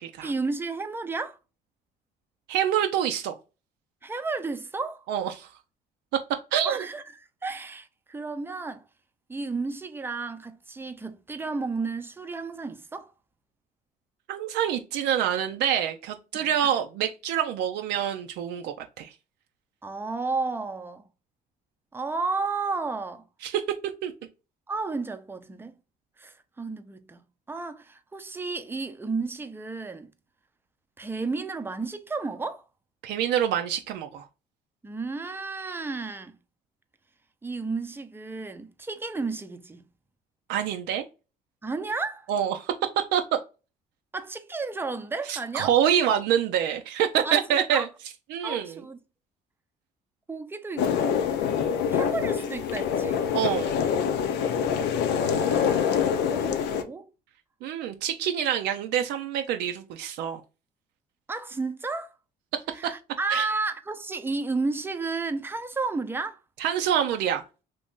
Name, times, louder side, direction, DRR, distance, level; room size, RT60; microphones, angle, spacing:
voice 1, 0.2-1.4 4.0-5.0 6.6-7.0 7.4-8.8 9.3-13.1 16.3-16.5 19.8-21.1 21.9-23.2 24.7-25.7 26.2-27.2 27.5-30.1 31.0-32.6 34.8-36.4 37.4-39.9 41.6-42.3 44.1-45.7 47.2-47.9 48.4-49.0 50.3-51.3 51.9-53.2 55.1-57.1 61.3-62.1 62.7-66.4, right 3 dB, 15° right, 0.5 m, -32 dB
voice 2, 2.5-3.4 5.1-5.5 6.5-6.9 14.3-19.1 23.4-23.6 24.0-24.1 33.0-34.2 40.5-41.0 42.3-42.7 43.1-43.2 45.3-47.9 48.3-48.7 53.3-53.7 57.6-60.4 63.3-63.5 66.6-67.4, right 9 dB, 85° right, 0.5 m, -26 dB
sound 1, 50.8-56.8, left 7 dB, 80° left, 0.6 m, -25 dB
2.9 x 2.6 x 3.6 m
cardioid pair, 110°, 17 cm